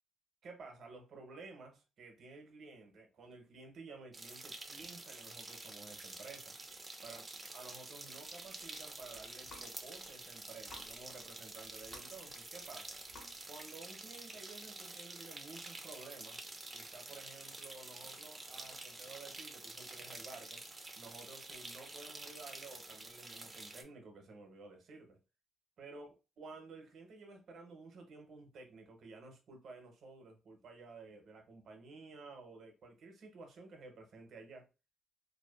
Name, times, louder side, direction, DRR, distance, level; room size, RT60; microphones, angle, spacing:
voice 1, 0.4-6.6 7.0-7.2 7.5-13.0 13.5-16.4 16.7-20.6 21.0-25.2 25.8-26.1 26.4-34.7, right 3 dB, 60° right, 0.8 m, -53 dB
sound 1, 4.1-23.8, right 2 dB, 25° right, 0.5 m, -49 dB
sound 2, 8.4-10.1 10.6-11.3 11.6-13.6, left 2 dB, 55° left, 1.2 m, -57 dB
2.6 x 2.3 x 2.3 m
cardioid pair, 90°, 0 cm